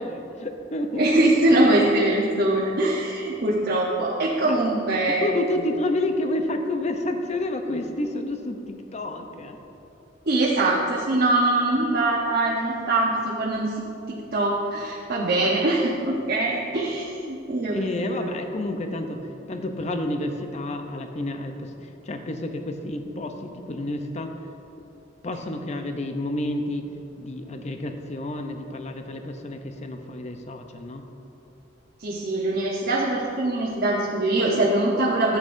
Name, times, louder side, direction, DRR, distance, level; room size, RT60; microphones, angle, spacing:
voice 1, 0.0-1.1 4.4-4.6 5.1-9.6 17.7-24.4 25.2-26.9 27.2-31.0, left 1 dB, 35° left, 5 dB, 0.6 m, -30 dB
voice 2, 1.0-5.3 10.3-13.7 14.1-18.3 32.0-35.4, right 2 dB, 55° right, -4 dB, 0.9 m, -23 dB
12.5 x 8.2 x 2.6 m, 2.8 s
head